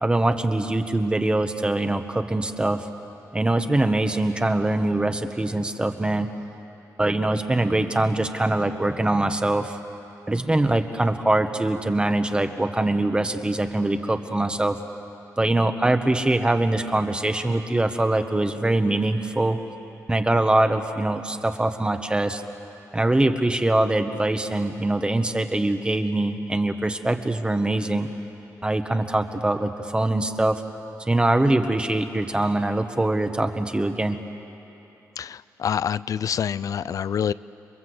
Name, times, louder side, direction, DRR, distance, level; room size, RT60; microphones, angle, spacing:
voice 1, 0.0-2.9 3.3-6.3 7.0-9.8 10.3-14.8 15.4-19.6 20.1-22.4 22.9-28.1 28.6-30.6 31.1-34.2, right 2 dB, 15° right, 7 dB, 1.2 m, -23 dB
voice 2, 35.2-37.3, left 8 dB, 65° left, 18 dB, 0.5 m, -26 dB
29.5 x 22.5 x 8.0 m, 3.0 s
cardioid pair, 110°, 6 cm